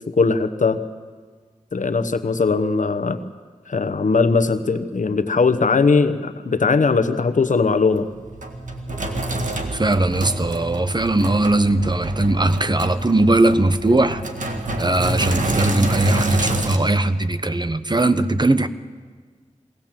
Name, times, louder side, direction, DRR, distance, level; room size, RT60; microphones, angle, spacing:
voice 1, 0.1-0.8 1.7-3.2 3.7-8.1, left 4 dB, 80° left, 9 dB, 1.0 m, -19 dB
Sink (filling or washing), 7.9-16.8, right 1 dB, 85° right, 1.9 m, -27 dB
voice 2, 9.7-14.2 14.8-18.7, right 2 dB, 35° right, 11 dB, 1.0 m, -19 dB
22.0 x 18.0 x 7.5 m, 1.5 s
wide cardioid pair, 45°, 13 cm